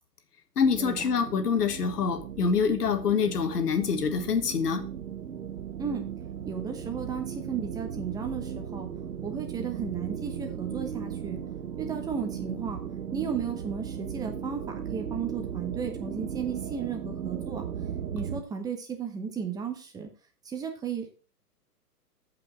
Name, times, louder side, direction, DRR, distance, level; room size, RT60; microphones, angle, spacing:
voice 1, 0.6-4.8, left 6 dB, 75° left, 7 dB, 1.9 m, -26 dB
sound 1, 0.6-18.4, right 8 dB, 85° right, 1.2 m, -37 dB
voice 2, 6.5-8.9 9.2-11.4 11.8-12.8 13.1-14.6 14.9-17.7 18.1-20.1 20.4-21.1, right 6 dB, 10° right, 4 dB, 1.0 m, -34 dB
8.1 x 5.6 x 5.5 m, 0.36 s
hypercardioid pair, 140°, 48 cm